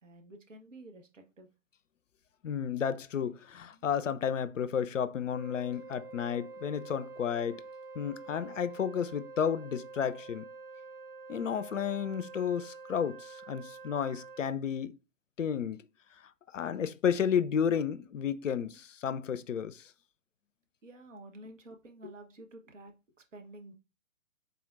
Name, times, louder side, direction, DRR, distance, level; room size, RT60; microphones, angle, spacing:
voice 1, 0.0-1.5 3.7-3.9 11.3-11.5 18.7-18.8 20.8-23.7, right 1 dB, 65° right, 1.1 m, -51 dB
voice 2, 2.4-7.6 8.0-10.4 11.3-14.9 15.4-15.8 16.5-19.8, left 8 dB, 70° left, 0.5 m, -32 dB
Wind instrument woodwind instrument, 5.3-14.5, right 4 dB, 20° right, 1.1 m, -47 dB
4.2 x 3.9 x 2.4 m
figure-of-eight pair, 125°, 40 cm